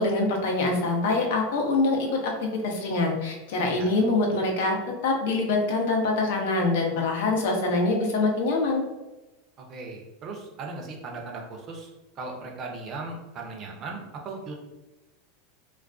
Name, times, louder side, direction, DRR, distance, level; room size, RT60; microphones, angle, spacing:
voice 1, 0.0-2.3 2.6-4.8 5.0-8.8, left 3 dB, 75° left, 1 dB, 0.6 m, -24 dB
voice 2, 9.6-11.9 12.2-14.5, right 3 dB, 35° right, 0 dB, 0.5 m, -37 dB
2.3 x 2.2 x 2.4 m, 1.1 s
supercardioid pair, 135°, 0 cm